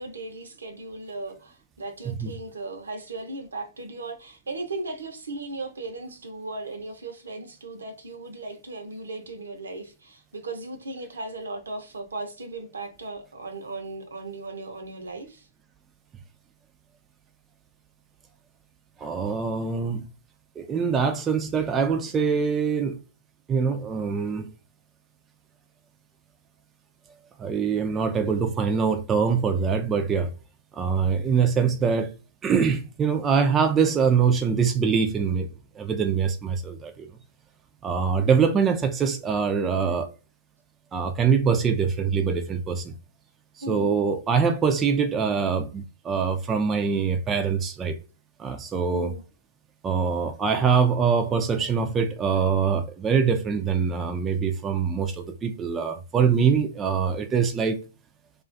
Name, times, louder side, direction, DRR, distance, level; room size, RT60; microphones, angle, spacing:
voice 1, 0.0-15.5 43.6-44.0 48.9-49.2, right 2 dB, 85° right, 0.6 m, -37 dB
voice 2, 19.0-20.0 20.6-23.0 23.5-24.5 27.4-30.3 30.7-32.1 32.4-35.5 35.8-37.1 37.8-40.1 40.9-42.9 43.7-47.9 48.4-49.1 49.8-57.8, right 6 dB, 20° right, 0.3 m, -24 dB
2.4 x 2.3 x 2.5 m
hypercardioid pair, 120°, 0 cm